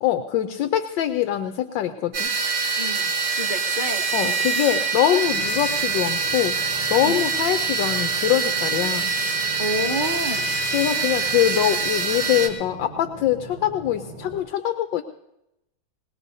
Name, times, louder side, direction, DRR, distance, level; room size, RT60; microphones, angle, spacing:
voice 1, 0.0-2.3 4.1-6.6 6.9-9.1 10.7-15.0, left 12 dB, 70° left, 6 dB, 1.3 m, -23 dB
sound 1, 2.1-12.5, right 4 dB, 85° right, 2.9 m, -25 dB
voice 2, 2.8-4.5 7.0-7.3 9.6-10.5, equal, 45° right, 0 dB, 0.6 m, -30 dB
sound 2, 5.2-14.4, right 2 dB, 25° right, 5.7 m, -41 dB
21.5 x 18.5 x 2.7 m, 0.86 s
omnidirectional pair, 2.3 m